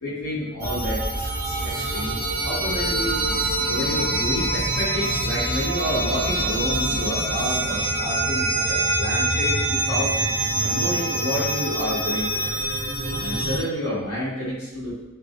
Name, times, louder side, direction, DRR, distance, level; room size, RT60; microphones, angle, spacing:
voice 1, 0.0-3.2 3.6-10.1 10.6-12.6 13.2-15.0, equal, 80° left, -10 dB, 1.1 m, -29 dB
sound 1, 0.6-13.6, right 2 dB, 40° right, 0.5 m, -25 dB
sound 2, 0.7-7.6, equal, 35° left, 1.1 m, -39 dB
4.4 x 2.1 x 2.4 m, 1.1 s
head